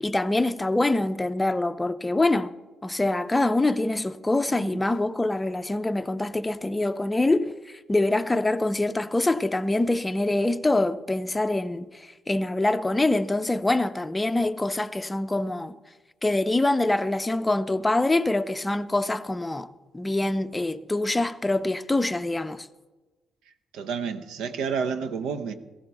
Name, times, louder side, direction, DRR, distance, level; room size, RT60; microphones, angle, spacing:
voice 1, 0.0-2.5 2.8-15.8 16.2-19.7 19.9-22.7, left 2 dB, 15° left, 0.6 m, -25 dB
voice 2, 4.5-4.8 23.7-25.5, right 6 dB, 90° right, 0.8 m, -30 dB
16.5 x 14.5 x 3.5 m
cardioid pair, 90°, 0 cm